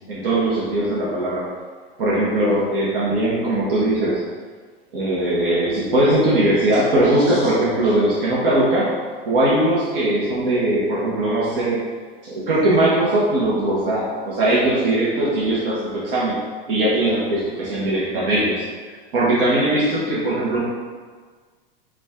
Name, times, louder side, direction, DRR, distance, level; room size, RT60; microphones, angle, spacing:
voice 1, 0.0-1.5 2.0-4.2 4.9-8.9 9.2-11.8 12.2-16.4 16.7-18.6 19.1-20.7, right 1 dB, 75° right, -7 dB, 1.1 m, -20 dB
4.9 x 2.4 x 3.6 m, 1.5 s
hypercardioid pair, 105°, 29 cm